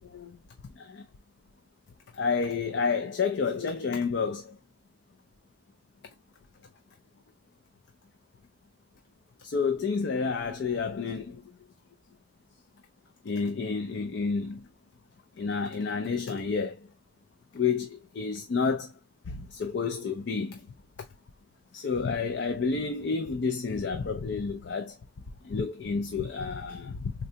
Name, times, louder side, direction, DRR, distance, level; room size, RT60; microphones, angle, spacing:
voice 1, 2.2-4.5 9.4-11.4 13.2-14.6 15.4-16.8 17.5-18.9 19.3-20.6 21.7-24.9 25.4-27.1, left 5 dB, 75° left, 0.4 m, -30 dB
3.8 x 2.2 x 2.7 m
head